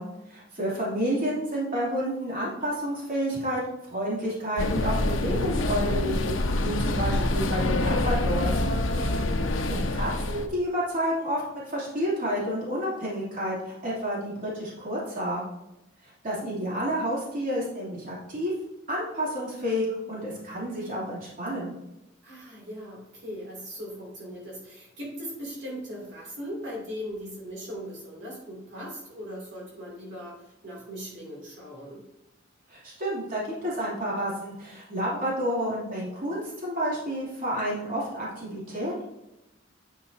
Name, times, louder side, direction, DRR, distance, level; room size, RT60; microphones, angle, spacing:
voice 1, 0.0-3.6 3.9-8.6 9.6-15.4 16.2-18.5 18.9-21.7 32.7-39.0, equal, 45° right, -7 dB, 2.9 m, -30 dB
sound 1, 4.6-10.5, left 1 dB, 80° left, 0.8 m, -26 dB
voice 2, 8.8-9.3 22.2-32.0, equal, 65° right, -4 dB, 2.9 m, -39 dB
9.5 x 6.9 x 2.8 m, 0.90 s
head